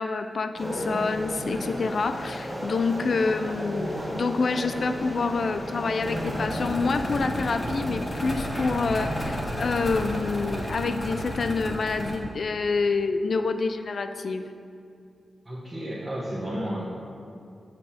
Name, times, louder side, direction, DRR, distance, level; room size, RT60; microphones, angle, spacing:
voice 1, 0.0-14.5, left 4 dB, 55° left, 9 dB, 0.4 m, -27 dB
sound 1, 0.5-10.7, equal, ahead, 1.4 m, -34 dB
sound 2, 6.0-12.2, equal, 30° left, 1.2 m, -33 dB
voice 2, 15.4-16.9, equal, 20° right, -7 dB, 1.1 m, -32 dB
8.3 x 7.6 x 2.8 m, 2.4 s
wide cardioid pair, 125°, 0 cm